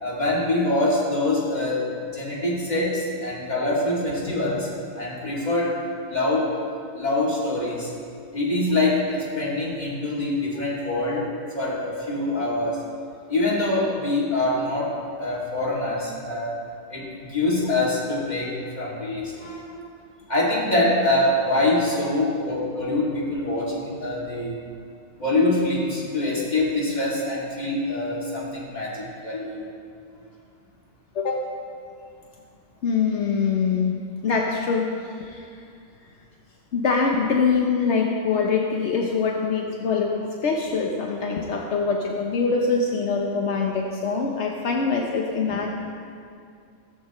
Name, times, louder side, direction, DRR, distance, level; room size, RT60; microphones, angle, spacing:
voice 1, 0.0-4.7 5.0-6.5 6.9-7.9 8.3-11.3 11.5-12.8 13.3-16.6 16.9-19.9 20.3-24.5 25.2-29.6, left 2 dB, 40° left, -5 dB, 2.6 m, -24 dB
voice 2, 31.1-31.5 32.8-35.5 36.7-45.7, left 5 dB, 80° left, 0 dB, 1.2 m, -24 dB
15.0 x 14.0 x 3.1 m, 2.3 s
omnidirectional pair, 1.2 m